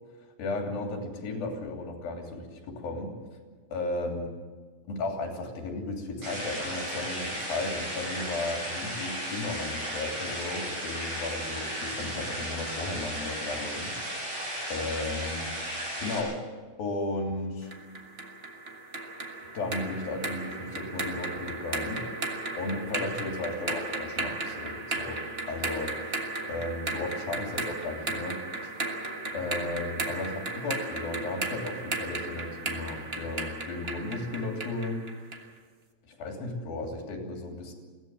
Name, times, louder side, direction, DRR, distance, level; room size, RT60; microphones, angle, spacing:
voice 1, 0.4-3.1 3.7-4.3 4.9-14.4 14.7-15.5 16.0-16.4 16.8-17.7 19.5-22.0 22.6-25.9 26.4-28.8 29.3-35.0 36.0-37.7, left 2 dB, 85° left, 2 dB, 4.9 m, -35 dB
sound 1, 6.2-16.2, equal, 45° right, 9.0 m, -35 dB
sound 2, 17.7-35.5, right 2 dB, 90° right, 0.5 m, -35 dB
23.0 x 16.5 x 7.7 m, 1.5 s
omnidirectional pair, 4.1 m